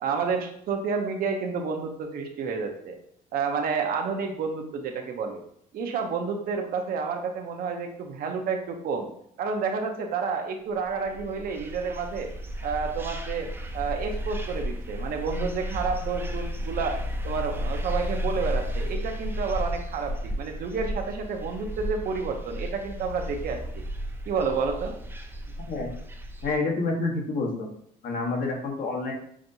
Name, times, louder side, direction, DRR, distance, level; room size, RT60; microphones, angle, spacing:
voice 1, 0.0-3.0 3.3-5.4 5.7-9.1 9.4-12.3 12.6-13.5 13.7-17.0 17.2-23.8 24.3-24.9, right 5 dB, 60° right, 4 dB, 0.7 m, -30 dB
sound 1, 10.9-26.6, equal, 15° right, 0.5 m, -33 dB
voice 2, 26.4-27.7 28.0-29.1, left 3 dB, 55° left, 0 dB, 1.1 m, -28 dB
5.9 x 2.6 x 2.7 m, 0.67 s
cardioid pair, 110°, 17 cm